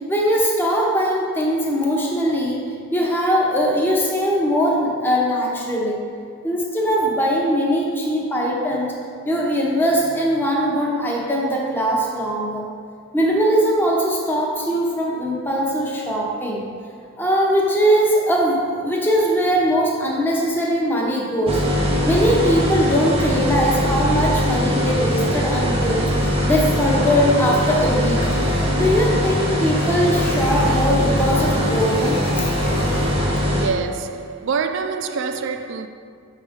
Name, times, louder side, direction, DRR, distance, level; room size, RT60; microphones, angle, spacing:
voice 1, 0.0-2.6 2.9-6.0 6.4-8.9 9.2-12.6 13.1-16.6 17.2-21.6 22.0-28.2 28.7-32.5, equal, 10° left, 0.7 m, -20 dB
sound 1, 21.5-33.7, equal, 25° right, 0.7 m, -21 dB
sound 2, 28.2-28.7 29.8-33.1, left 1 dB, 75° left, 1.1 m, -34 dB
voice 2, 33.6-35.9, right 5 dB, 55° right, 0.3 m, -25 dB
6.0 x 3.7 x 5.0 m
head